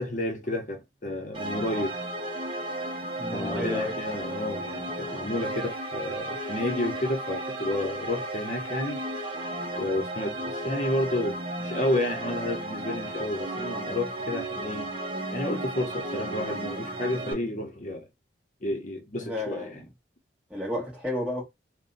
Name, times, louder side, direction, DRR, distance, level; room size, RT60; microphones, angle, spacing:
voice 1, 0.0-2.0 3.3-9.0 9.8-14.9 15.3-18.1 18.6-19.8, left 1 dB, 40° left, 0.8 m, -31 dB
sound 1, 1.3-17.3, right 1 dB, 25° right, 0.7 m, -34 dB
voice 2, 3.2-3.9 19.2-19.8 20.5-21.4, left 1 dB, 5° right, 1.3 m, -31 dB
2.6 x 2.2 x 3.9 m
head